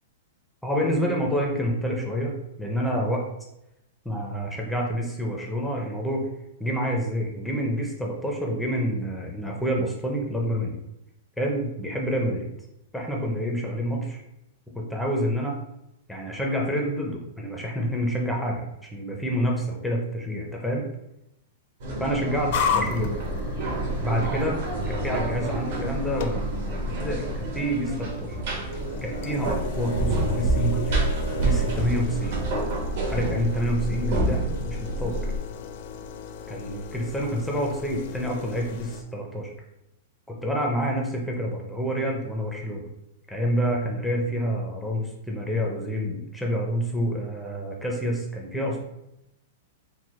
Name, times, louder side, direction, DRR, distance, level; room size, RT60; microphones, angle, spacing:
voice 1, 0.6-3.2 4.0-6.3 6.6-10.8 11.4-12.5 12.9-14.2 14.7-15.6 16.1-20.8 22.0-23.1 24.0-24.6 24.9-26.4 26.7-28.4 29.0-31.0 31.4-32.5 33.0-35.2 36.5-39.5 40.3-42.8 43.3-48.8, equal, ahead, -2 dB, 0.5 m, -28 dB
sound 1, 21.8-35.4, right 2 dB, 55° right, 1.2 m, -28 dB
sound 2, 22.5-39.0, left 5 dB, 50° left, 0.5 m, -35 dB
4.5 x 2.2 x 4.2 m, 0.85 s
supercardioid pair, 160°, 0 cm